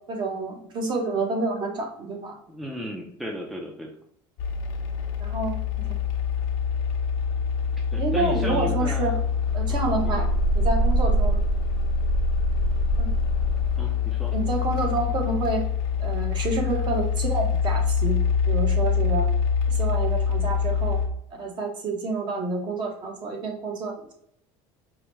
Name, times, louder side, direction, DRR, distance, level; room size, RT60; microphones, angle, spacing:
voice 1, 0.1-2.4 5.2-5.6 5.9-6.0 8.0-9.1 9.5-10.3 10.5-11.4 13.0-13.1 14.3-15.6 16.0-18.2 18.5-19.3 19.7-21.0 21.4-24.1, right 3 dB, 40° right, 2 dB, 0.9 m, -28 dB
voice 2, 2.5-3.9 7.9-9.2 9.7-10.2 13.8-14.4, equal, ahead, 0 dB, 0.5 m, -35 dB
sound 1, 4.4-21.1, left 4 dB, 70° left, 0.7 m, -24 dB
4.8 x 2.1 x 3.0 m, 0.70 s
cardioid pair, 125°, 12 cm